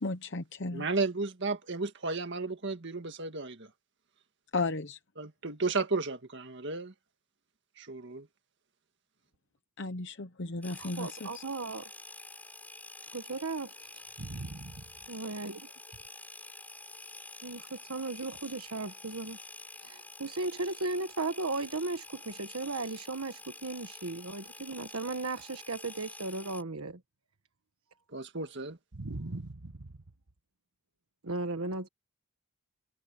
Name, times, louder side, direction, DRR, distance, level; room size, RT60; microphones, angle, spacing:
voice 1, 0.0-0.9 4.5-5.0 9.8-11.4, left 3 dB, 55° left, 0.9 m, -34 dB
voice 2, 0.7-3.7 5.2-6.9 7.8-8.3 28.1-28.8, right 3 dB, 55° right, 1.9 m, -33 dB
sound 1, 10.6-26.6, left 2 dB, 10° left, 4.8 m, -48 dB
voice 3, 10.8-11.9 13.1-14.7 15.1-15.7 17.4-19.4 19.8-27.0 28.9-29.9 31.2-31.9, right 3 dB, 80° right, 1.4 m, -36 dB
head